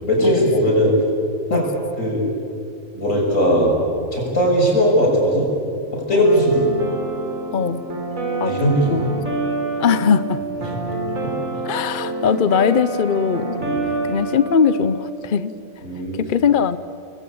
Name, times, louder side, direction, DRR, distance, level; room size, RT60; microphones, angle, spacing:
voice 1, 0.0-1.0 1.5-1.6 2.0-2.2 2.9-3.7 4.1-5.5 5.9-6.7 8.4-9.1 10.7-10.8 11.1-11.3 13.6-13.8 15.8-16.2, equal, 70° left, -1 dB, 7.2 m, -18 dB
sound 1, 6.2-15.0, right 2 dB, 70° right, 4.9 m, -27 dB
voice 2, 9.8-10.4 11.6-13.6 14.1-15.5 16.3-16.8, left 7 dB, 45° left, 14 dB, 0.7 m, -20 dB
29.5 x 21.0 x 8.7 m, 2.7 s
omnidirectional pair, 1.4 m